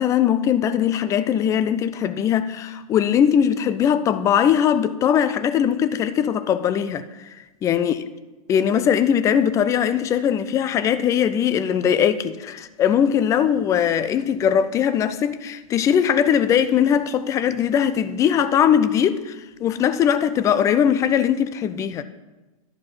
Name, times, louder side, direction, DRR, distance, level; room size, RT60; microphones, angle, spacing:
voice 1, 0.0-7.3 7.6-8.0 8.5-22.0, left 8 dB, 15° left, 0.3 m, -20 dB
11.0 x 5.1 x 5.5 m
figure-of-eight pair, 105°, 19 cm